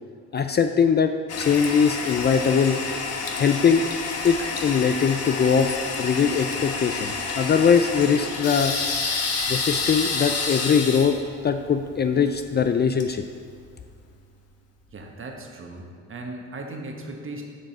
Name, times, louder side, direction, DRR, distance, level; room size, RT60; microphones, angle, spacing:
voice 1, 0.3-1.1 1.4-2.8 3.4-3.8 4.2-8.7 9.5-11.2 11.4-13.2, left 6 dB, 35° left, 7 dB, 0.4 m, -21 dB
Toilet flush, 1.3-13.9, left 4 dB, 55° left, 1.2 m, -29 dB
voice 2, 14.9-17.4, right 2 dB, 45° right, 2 dB, 1.3 m, -37 dB
7.4 x 5.2 x 6.6 m, 2.1 s
cardioid pair, 90°, 30 cm